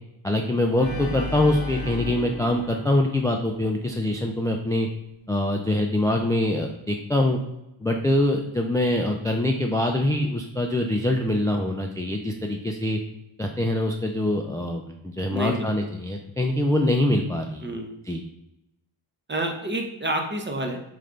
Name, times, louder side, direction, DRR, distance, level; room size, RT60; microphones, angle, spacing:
voice 1, 0.2-4.9 5.3-7.4 7.8-13.0 13.4-17.6 18.1-18.2, left 1 dB, 10° left, 1 dB, 0.3 m, -24 dB
Organ, 0.8-3.9, left 4 dB, 55° left, 1.0 m, -35 dB
voice 2, 15.3-15.7 17.6-17.9 19.3-20.8, right 1 dB, 25° right, 3 dB, 0.7 m, -28 dB
3.3 x 3.2 x 3.8 m, 0.91 s
cardioid pair, 65°, 48 cm